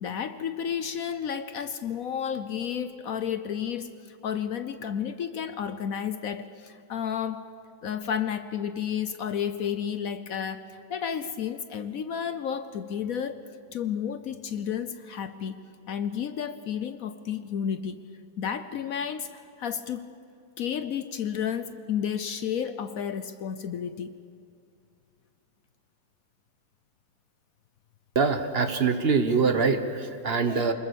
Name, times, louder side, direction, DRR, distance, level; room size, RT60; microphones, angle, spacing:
voice 1, 0.0-7.5 7.8-15.6 15.9-18.0 18.4-19.3 19.6-20.1 20.6-24.2, left 8 dB, 60° left, 11 dB, 0.9 m, -32 dB
voice 2, 28.1-30.7, right 4 dB, 40° right, 8 dB, 1.1 m, -24 dB
24.5 x 21.0 x 7.0 m, 2.5 s
omnidirectional pair, 2.1 m